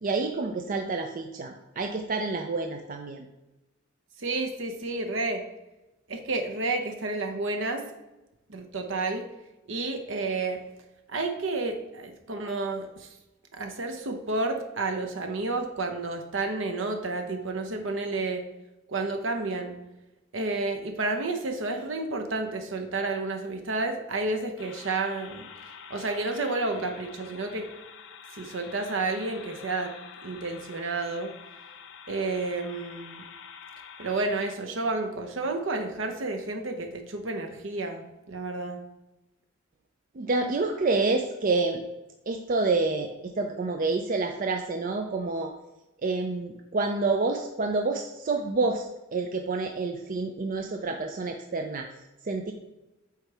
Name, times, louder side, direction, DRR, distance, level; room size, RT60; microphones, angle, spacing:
voice 1, 0.0-3.3 40.1-41.8 42.3-45.5 46.0-51.9 52.2-52.5, right 3 dB, 45° right, 4 dB, 0.5 m, -28 dB
voice 2, 4.2-5.4 6.1-7.9 8.5-9.3 9.7-10.6 11.1-13.1 13.5-18.4 18.9-19.7 20.3-25.4 25.9-27.7 28.4-29.9 30.2-31.3 32.1-33.2 34.0-38.0 38.3-38.8, right 3 dB, 70° right, 5 dB, 0.9 m, -30 dB
sound 1, 24.6-34.6, left 6 dB, 65° left, 0.7 m, -47 dB
8.1 x 4.7 x 3.4 m, 1.0 s
head